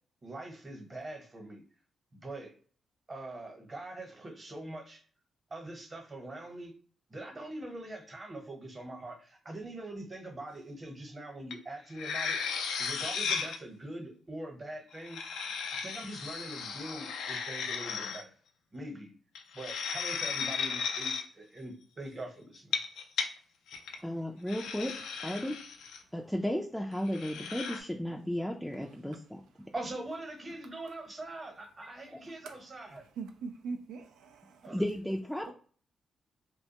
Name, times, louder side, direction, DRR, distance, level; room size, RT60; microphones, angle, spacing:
voice 1, 0.2-1.6 2.1-2.5 3.1-5.0 5.5-6.7 7.1-12.4 12.8-15.2 15.7-18.3 18.7-19.1 19.5-22.7 29.7-33.0 34.6-34.8, right 1 dB, 35° right, 1.0 m, -43 dB
sound 1, 11.5-11.6 11.9-13.6 14.9-18.2 19.3-21.2 22.6-23.3 23.7-24.0 24.5-26.0 27.0-27.8, left 6 dB, 85° left, 0.3 m, -35 dB
voice 2, 24.0-24.9 25.2-25.6 26.1-29.4 32.1-32.2 34.7-35.5, equal, 5° left, 0.4 m, -34 dB
voice 3, 33.2-34.7 35.5-35.6, right 4 dB, 85° right, 0.3 m, -41 dB
2.4 x 2.2 x 2.8 m
supercardioid pair, 55°, 0 cm